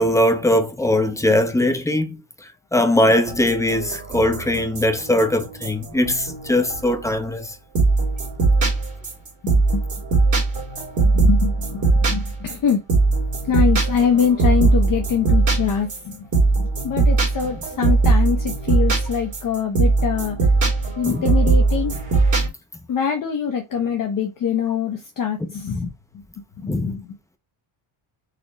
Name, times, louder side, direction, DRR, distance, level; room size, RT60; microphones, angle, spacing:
voice 1, 0.0-2.2 2.7-7.5 21.1-21.2 25.7-25.9 26.7-26.9, left 1 dB, 5° left, 0.4 m, -20 dB
sound 1, 3.2-7.2 7.7-22.5, right 3 dB, 35° right, 2.0 m, -20 dB
voice 2, 11.0-12.8 13.5-16.3 16.6-20.4 21.0-21.9 22.9-25.8 26.6-27.1, left 7 dB, 40° left, 0.8 m, -24 dB
4.2 x 2.9 x 3.9 m
cardioid pair, 165°, 49 cm